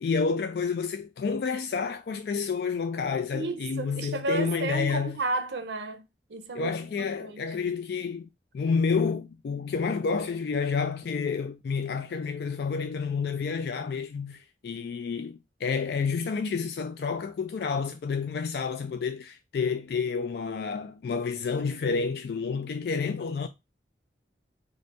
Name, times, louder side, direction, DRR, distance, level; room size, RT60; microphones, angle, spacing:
voice 1, 0.0-5.2 6.5-8.3 8.5-23.5, left 5 dB, 60° left, 0.3 m, -29 dB
voice 2, 3.3-6.0 6.3-7.4, right 3 dB, 75° right, 0.6 m, -32 dB
4.0 x 2.5 x 3.3 m
head